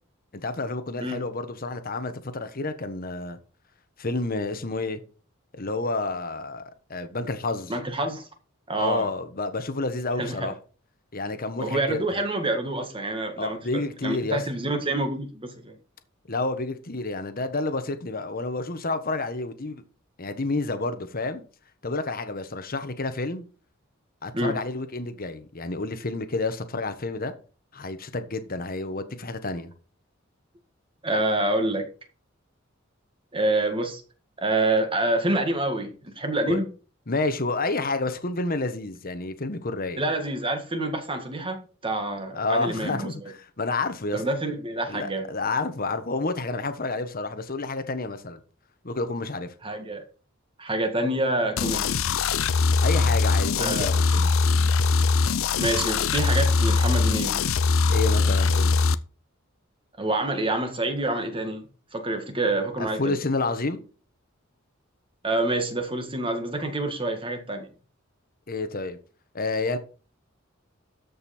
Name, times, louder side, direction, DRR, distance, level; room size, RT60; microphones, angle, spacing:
voice 1, 0.3-3.4 4.0-5.0 5.5-6.6 6.9-7.7 8.8-10.5 11.1-12.2 13.4-14.4 16.3-19.8 20.2-21.4 21.8-23.4 24.2-27.3 27.7-29.7 36.5-36.6 37.1-40.0 42.3-44.2 44.9-48.4 48.8-49.5 52.8-54.3 57.9-58.8 62.8-63.8 68.5-69.0 69.3-69.8, left 3 dB, 45° left, 1.2 m, -29 dB
voice 2, 7.7-8.3 8.7-9.1 10.2-10.5 11.6-15.8 24.3-24.6 31.0-31.9 33.3-34.0 34.4-36.7 40.0-43.1 44.1-45.3 49.6-50.0 50.6-52.0 53.6-53.9 55.6-57.4 60.0-61.7 61.9-63.2 65.2-67.7, right 2 dB, 25° right, 1.8 m, -27 dB
sound 1, 51.6-59.0, left 4 dB, 80° left, 0.6 m, -22 dB
13.0 x 5.5 x 4.3 m
head